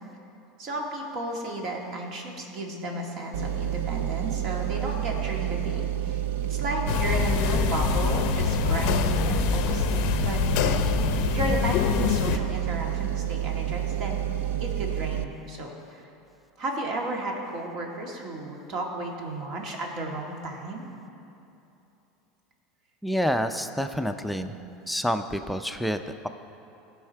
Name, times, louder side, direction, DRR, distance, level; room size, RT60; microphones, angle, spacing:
voice 1, 0.6-10.8 11.3-14.2 14.6-16.1 16.6-20.9 24.3-24.5, right 2 dB, 55° right, 1 dB, 1.8 m, -33 dB
sound 1, 3.3-15.2, right 12 dB, 85° right, 0.3 m, -29 dB
sound 2, 6.9-12.4, left 10 dB, 65° left, 0.5 m, -25 dB
voice 2, 23.0-24.6 24.9-26.3, equal, ahead, 7 dB, 0.5 m, -28 dB
16.0 x 5.7 x 4.5 m, 2.8 s
supercardioid pair, 100°, 0 cm